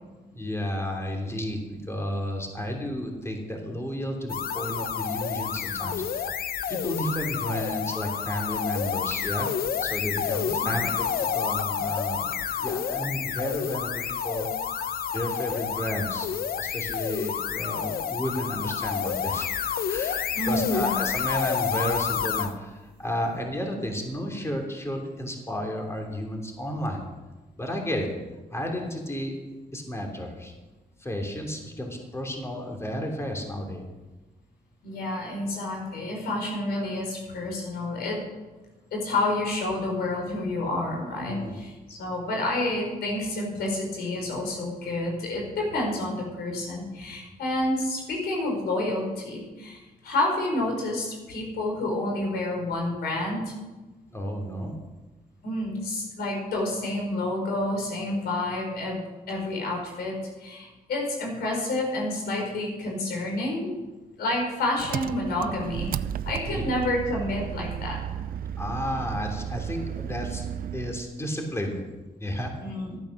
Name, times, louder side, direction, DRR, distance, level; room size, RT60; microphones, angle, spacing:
voice 1, 0.3-6.4 6.7-9.5 9.8-11.1 11.3-14.5 15.1-16.3 16.6-19.5 19.9-27.0 27.6-28.1 28.5-29.4 29.7-30.5 31.0-33.8 41.3-41.6 54.1-54.8 66.5-66.6 68.6-70.4 70.7-71.8 72.2-72.5, equal, 15° left, 1 dB, 2.9 m, -32 dB
sound 1, 4.3-22.6, left 8 dB, 70° left, 0.8 m, -29 dB
voice 2, 20.3-21.0 34.8-38.2 38.9-53.5 55.4-59.0 59.3-63.7 64.2-65.9 66.2-68.0 72.6-73.0, left 2 dB, 85° left, 0 dB, 5.0 m, -29 dB
Engine, 64.8-71.1, right 9 dB, 65° right, 0.5 m, -34 dB
14.5 x 9.0 x 6.5 m, 1.2 s
cardioid pair, 75°, 16 cm